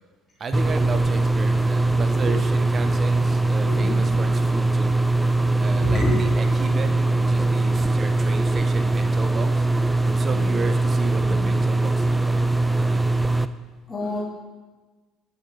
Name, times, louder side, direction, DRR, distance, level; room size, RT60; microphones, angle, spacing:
voice 1, 0.4-5.0 5.5-9.6 10.1-13.0, right 4 dB, 40° right, 8 dB, 0.9 m, -34 dB
sound 1, 0.5-13.5, right 2 dB, 10° right, 0.5 m, -21 dB
sound 2, 2.7-8.9, left 2 dB, 10° left, 2.2 m, -47 dB
voice 2, 3.6-4.0 5.8-6.2 11.3-11.4 13.9-14.2, left 2 dB, 30° left, -5 dB, 2.4 m, -28 dB
10.5 x 9.5 x 3.4 m, 1.3 s
hypercardioid pair, 60°, 0 cm